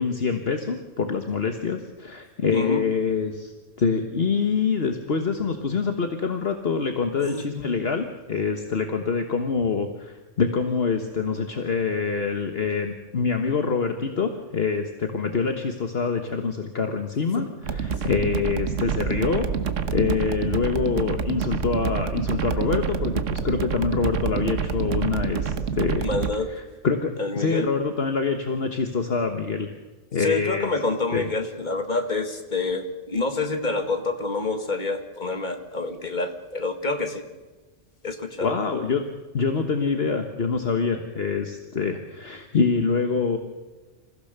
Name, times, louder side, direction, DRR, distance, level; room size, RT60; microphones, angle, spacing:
voice 1, 0.0-3.5 3.8-19.5 19.9-26.1 26.5-29.7 30.1-30.7 31.1-31.2 38.4-39.0 39.3-43.4, left 5 dB, 55° left, 5 dB, 1.6 m, -25 dB
voice 2, 2.5-2.8 7.2-7.4 17.3-17.5 26.0-26.5 27.2-27.7 30.2-37.3 38.0-38.5, left 3 dB, 40° left, 6 dB, 2.1 m, -27 dB
sound 1, 17.6-26.4, right 6 dB, 80° right, 1.4 m, -27 dB
27.5 x 15.5 x 6.8 m, 1.2 s
omnidirectional pair, 1.3 m